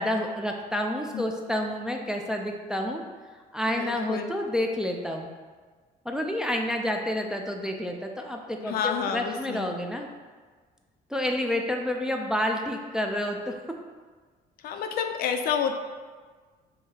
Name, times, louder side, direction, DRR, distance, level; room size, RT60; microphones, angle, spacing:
voice 1, 0.0-3.0 3.5-5.3 6.1-10.1 11.1-13.6, left 1 dB, 5° right, 1 dB, 0.3 m, -29 dB
voice 2, 3.7-4.3 8.6-9.7 14.6-15.7, left 7 dB, 60° left, 6 dB, 0.4 m, -29 dB
5.5 x 2.7 x 2.8 m, 1.5 s
cardioid pair, 110°, 17 cm